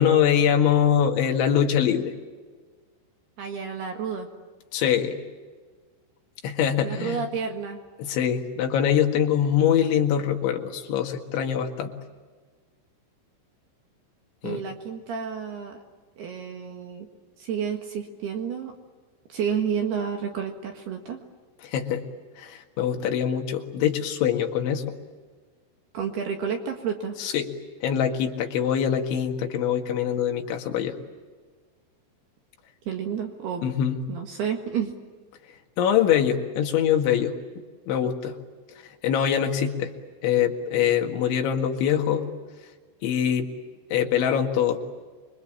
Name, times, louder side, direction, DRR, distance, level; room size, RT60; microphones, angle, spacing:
voice 1, 0.0-2.1 4.7-5.2 6.4-7.3 8.0-11.9 14.4-14.6 21.6-22.1 22.4-24.9 27.2-27.5 27.8-31.0 33.6-34.1 35.8-37.4 37.9-38.4 39.0-39.9 40.2-42.3 43.0-43.5 43.9-44.8, left 9 dB, 70° left, 3 dB, 4.1 m, -23 dB
voice 2, 3.4-4.3 6.8-7.8 14.4-15.8 16.2-17.1 17.4-18.8 19.3-21.2 25.9-27.2 32.9-33.6 34.1-34.9, right 7 dB, 60° right, 4 dB, 3.3 m, -30 dB
27.0 x 23.5 x 8.7 m, 1.4 s
omnidirectional pair, 5.9 m